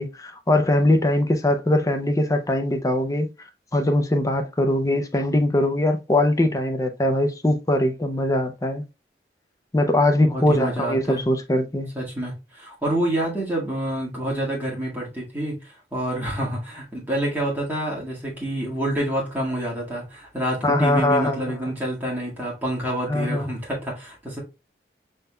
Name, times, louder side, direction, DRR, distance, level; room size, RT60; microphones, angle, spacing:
voice 1, 0.0-3.3 3.7-8.8 9.7-11.9 20.6-21.5 23.1-23.5, left 1 dB, 20° left, 0.5 m, -21 dB
voice 2, 10.2-11.2 11.9-15.5 15.9-24.4, right 1 dB, 10° right, 1.7 m, -27 dB
5.4 x 3.6 x 2.2 m
head